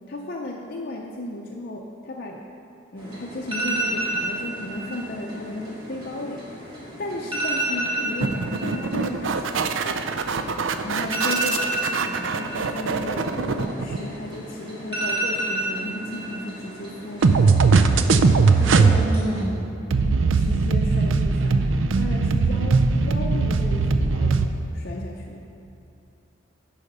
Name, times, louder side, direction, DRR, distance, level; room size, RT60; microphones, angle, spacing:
voice 1, 0.1-2.4 2.9-6.5 7.0-9.7 10.8-17.7 20.0-25.4, left 1 dB, 50° left, -1 dB, 0.6 m, -34 dB
sound 1, 3.0-19.4, right 1 dB, 25° right, 1.8 m, -32 dB
sound 2, 8.2-14.1 17.2-19.1 19.9-24.5, right 4 dB, 80° right, 0.5 m, -20 dB
voice 2, 18.6-19.8, right 1 dB, 20° left, -2 dB, 1.7 m, -30 dB
11.5 x 4.9 x 5.5 m, 2.8 s
head